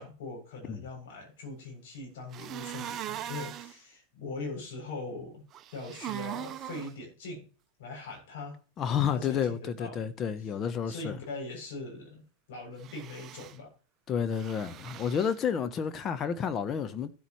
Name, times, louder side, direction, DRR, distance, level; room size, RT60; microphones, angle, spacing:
voice 1, 0.0-7.5 7.8-8.6 9.1-10.0 10.9-12.2 12.5-13.7, left 3 dB, 70° left, 7.5 m, -41 dB
sound 1, 2.3-3.7 5.5-6.9 12.8-13.6 14.3-15.4, right 11 dB, 35° right, 0.8 m, -40 dB
voice 2, 8.8-11.2 14.1-17.1, left 7 dB, 30° left, 0.9 m, -30 dB
15.5 x 8.3 x 3.1 m
hypercardioid pair, 115°, 0 cm